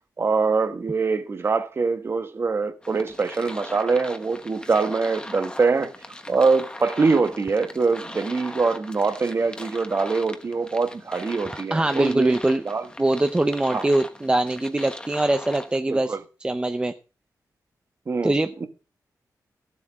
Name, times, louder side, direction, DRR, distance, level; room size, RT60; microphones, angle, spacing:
voice 1, 0.2-5.9 6.3-12.4 12.6-12.9 13.7-13.9 15.9-16.2 18.1-18.3 18.6-18.7, right 4 dB, 35° right, 1.3 m, -23 dB
sound 1, 2.8-15.8, left 1 dB, 15° left, 1.2 m, -40 dB
voice 2, 11.7-12.6 13.0-16.9 18.2-18.7, right 2 dB, 15° right, 0.6 m, -23 dB
14.5 x 7.4 x 4.8 m
wide cardioid pair, 145°, 7 cm